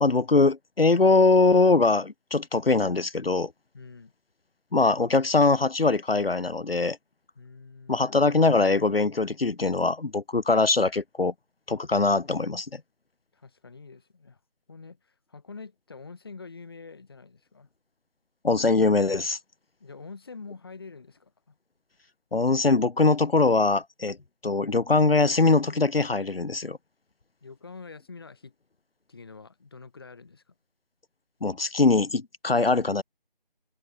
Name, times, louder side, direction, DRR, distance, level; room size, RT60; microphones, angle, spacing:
voice 1, 0.0-3.5 4.7-7.0 7.9-11.3 11.7-12.8 18.4-19.4 22.3-24.2 24.4-26.8 31.4-33.0, left 3 dB, 75° left, 1.2 m, -22 dB
voice 2, 3.7-4.1 7.4-8.0 13.3-14.4 14.7-17.7 19.8-21.6 27.4-28.5 29.1-30.5, left 4 dB, 25° left, 4.6 m, -45 dB
figure-of-eight pair, 175°, 29 cm